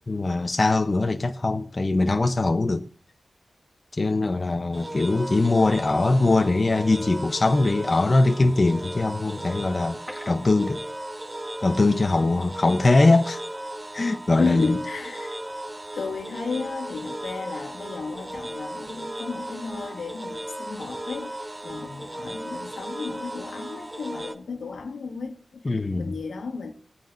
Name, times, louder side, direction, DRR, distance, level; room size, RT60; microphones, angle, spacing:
voice 1, 0.1-2.8 3.9-10.0 10.3-10.8 11.6-13.4 13.9-14.8 25.6-26.1, left 2 dB, 35° left, 0.8 m, -21 dB
sound 1, 4.7-24.3, right 1 dB, 15° right, 0.7 m, -36 dB
sound 2, 9.8-11.5 11.8-11.9 12.3-12.5, left 1 dB, ahead, 2.3 m, -44 dB
voice 2, 14.4-15.4 15.9-26.7, left 4 dB, 85° left, 1.6 m, -33 dB
20.0 x 9.1 x 2.6 m
wide cardioid pair, 110°, 0 cm